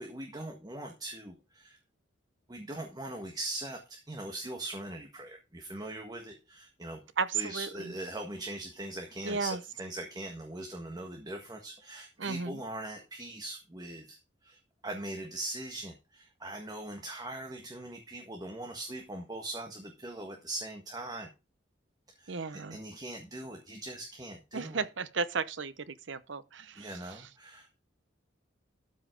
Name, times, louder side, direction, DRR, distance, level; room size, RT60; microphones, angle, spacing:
voice 1, 0.0-1.8 2.5-7.0 7.3-14.2 14.4-21.3 22.2-24.8 26.7-27.7, right 1 dB, 20° right, 1.6 m, -41 dB
voice 2, 7.2-7.9 9.2-9.6 12.2-12.6 22.3-22.8 24.5-26.9, right 4 dB, 70° right, 0.8 m, -34 dB
12.5 x 5.5 x 5.1 m
head